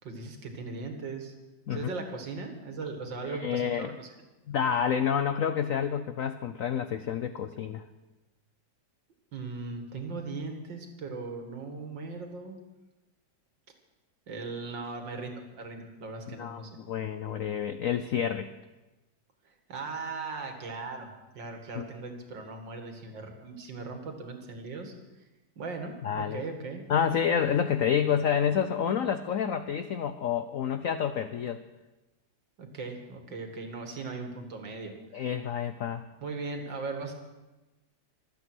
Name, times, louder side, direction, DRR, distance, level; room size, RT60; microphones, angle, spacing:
voice 1, 0.0-1.3 1.7-4.1 9.3-12.6 14.3-16.7 19.7-21.1 21.3-24.9 25.6-26.8 32.6-34.9 36.2-37.1, right 3 dB, 65° right, 4 dB, 2.7 m, -38 dB
voice 2, 3.2-4.0 4.5-7.8 16.3-18.5 21.7-21.9 26.0-26.4 26.9-31.6 35.1-36.0, left 8 dB, 70° left, 10 dB, 0.7 m, -29 dB
25.0 x 8.9 x 6.2 m, 1.1 s
omnidirectional pair, 2.2 m